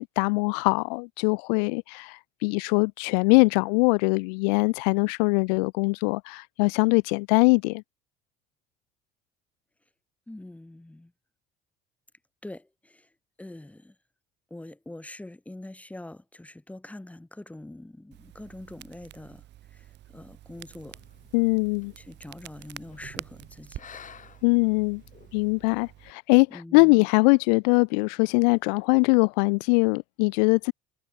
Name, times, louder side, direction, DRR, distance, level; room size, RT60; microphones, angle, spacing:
voice 1, 0.0-7.8 21.3-21.9 24.4-25.0 25.3-30.7, left 33 dB, 85° left, 0.4 m, -22 dB
voice 2, 10.3-11.1 12.4-13.1 13.4-13.9 14.5-19.4 19.7-21.0 22.0-24.0 26.5-27.1, left 1 dB, 5° left, 1.4 m, -44 dB
Crackle, 18.1-26.1, right 13 dB, 55° right, 1.3 m, -47 dB
sound 1, 20.5-25.5, left 8 dB, 35° left, 2.0 m, -53 dB
supercardioid pair, 90°, 21 cm